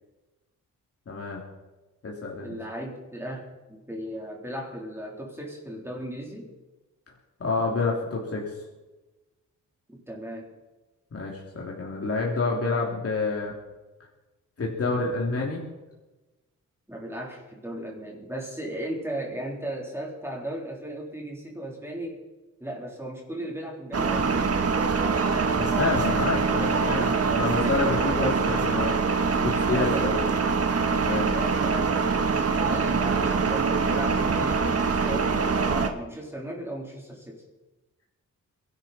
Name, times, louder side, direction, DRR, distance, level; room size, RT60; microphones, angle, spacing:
voice 1, 1.1-1.4 2.0-2.5 7.4-8.5 11.1-13.5 14.6-15.6 25.6-28.9 29.4-30.1 31.0-31.3, left 3 dB, 45° left, -2 dB, 3.0 m, -28 dB
voice 2, 2.4-6.5 9.9-10.5 16.9-22.2 22.6-25.7 27.4-28.4 29.3-30.3 31.3-32.2 32.6-37.4, right 1 dB, 10° right, -2 dB, 3.9 m, -36 dB
sound 1, 23.9-35.9, right 5 dB, 50° right, 1.5 m, -24 dB
22.5 x 12.0 x 4.4 m, 1.1 s
cardioid pair, 90°, 32 cm